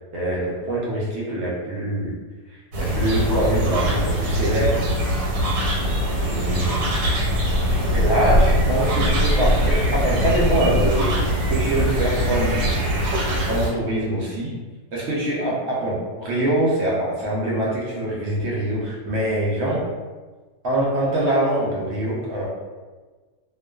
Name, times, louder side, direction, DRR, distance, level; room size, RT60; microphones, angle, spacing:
voice 1, 0.1-2.2 2.5-4.8 6.2-6.8 7.2-7.5 7.8-11.2 11.5-12.7 13.4-14.5 14.9-19.8 20.6-22.5, right 1 dB, 65° right, -5 dB, 0.8 m, -24 dB
sound 1, 2.7-13.7, equal, 85° right, 1.3 m, -21 dB
2.5 x 2.2 x 2.2 m, 1.3 s
omnidirectional pair, 1.7 m